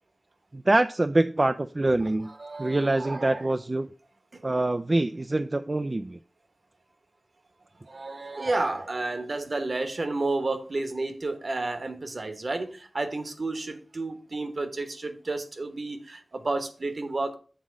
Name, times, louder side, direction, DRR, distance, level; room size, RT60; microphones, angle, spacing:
voice 1, 0.5-2.3 2.6-3.9 4.4-6.2, right 2 dB, 35° right, 10 dB, 0.3 m, -25 dB
voice 2, 2.3-3.5 4.3-4.4 7.8-17.3, right 2 dB, 55° right, 8 dB, 1.1 m, -31 dB
7.4 x 3.7 x 6.2 m, 0.40 s
wide cardioid pair, 60°, 0 cm